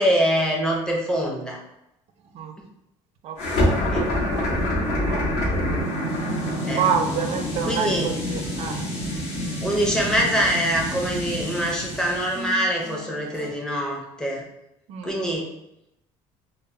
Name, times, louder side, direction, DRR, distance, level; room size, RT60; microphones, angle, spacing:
voice 1, 0.0-1.6 3.9-4.1 6.7-6.8 7.6-8.1 9.6-14.4 15.0-15.5, equal, 5° left, -2 dB, 0.5 m, -24 dB
voice 2, 3.2-4.5 5.0-5.3 6.8-8.9 14.9-15.1, right 7 dB, 50° right, 5 dB, 0.4 m, -28 dB
sound 1, 3.4-12.5, left 1 dB, 55° left, 0.8 m, -26 dB
sound 2, 7.6-13.5, equal, 75° left, 1.1 m, -42 dB
2.1 x 2.0 x 3.6 m, 0.85 s
cardioid pair, 140°, 13 cm